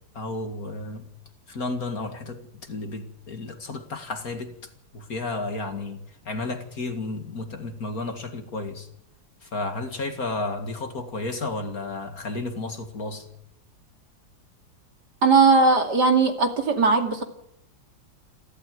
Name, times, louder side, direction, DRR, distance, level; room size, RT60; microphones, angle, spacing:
voice 1, 0.1-1.1 1.5-4.5 4.9-8.9 9.4-13.3, left 2 dB, 50° left, 2.5 m, -32 dB
voice 2, 15.2-17.2, right 4 dB, 55° right, 3.0 m, -19 dB
28.5 x 13.0 x 9.4 m
omnidirectional pair, 2.1 m